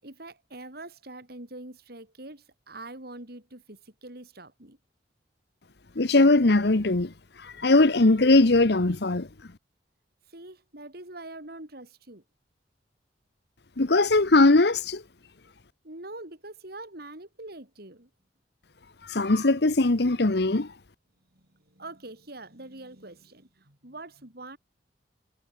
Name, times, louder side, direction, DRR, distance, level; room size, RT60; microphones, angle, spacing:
voice 1, 0.0-4.8 10.3-12.2 15.8-18.1 21.3-24.6, right 2 dB, 60° right, 5.1 m, -44 dB
voice 2, 6.0-7.1 7.4-9.3 13.8-15.0 19.0-20.7, left 2 dB, 65° left, 1.1 m, -20 dB
head